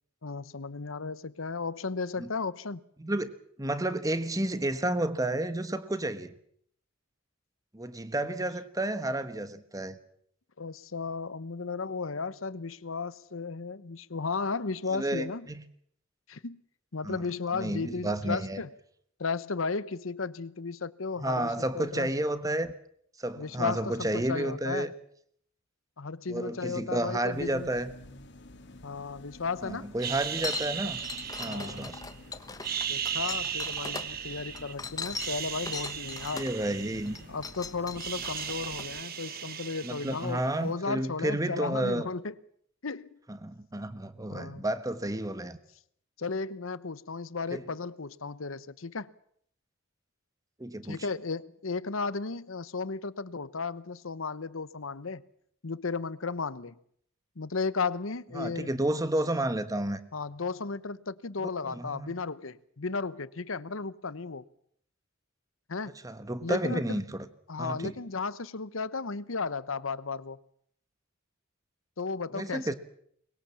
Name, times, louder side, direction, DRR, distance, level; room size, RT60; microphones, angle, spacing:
voice 1, 0.2-2.8 10.6-15.5 16.3-16.6 16.9-18.7 19.2-22.1 23.4-24.9 26.0-27.7 28.8-29.9 31.4-31.9 32.9-36.5 37.3-42.3 42.8-43.2 44.3-44.6 46.2-49.1 50.8-55.2 55.6-56.8 57.4-58.8 60.1-64.4 65.7-65.9 66.4-67.0 67.5-70.4 72.0-72.7, left 4 dB, 90° left, 1.0 m, -34 dB
voice 2, 3.0-3.3 3.6-6.3 7.7-10.0 14.9-15.6 17.0-17.2 17.5-18.6 21.2-22.7 23.2-24.9 26.3-27.9 29.6-31.0 31.4-32.0 36.3-37.2 39.8-42.1 43.3-45.6 47.5-47.6 50.6-51.0 58.3-60.0 61.6-62.1 66.0-67.0 67.6-67.9 72.3-72.7, right 1 dB, 20° right, 1.3 m, -31 dB
sound 1, 27.3-39.0, left 1 dB, 60° left, 2.1 m, -50 dB
sound 2, 30.0-32.1 32.5-34.7 35.1-37.5 37.7-40.6, right 8 dB, 50° right, 1.2 m, -36 dB
sound 3, 30.4-34.1 34.5-36.6 37.0-38.8, left 4 dB, 20° left, 1.2 m, -39 dB
23.5 x 21.0 x 7.2 m
head